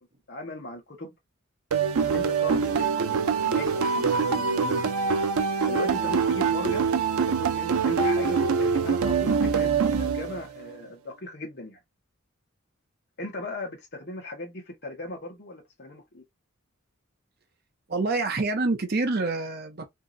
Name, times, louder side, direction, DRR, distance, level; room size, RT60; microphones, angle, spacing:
voice 1, 0.3-1.1 2.0-4.9 5.6-6.9 7.3-11.8 13.2-16.2, left 2 dB, 50° left, 1.0 m, -38 dB
sound 1, 1.7-10.6, right 5 dB, 90° right, 0.5 m, -24 dB
voice 2, 17.9-19.9, right 3 dB, 45° right, 0.6 m, -26 dB
2.9 x 2.7 x 2.5 m
head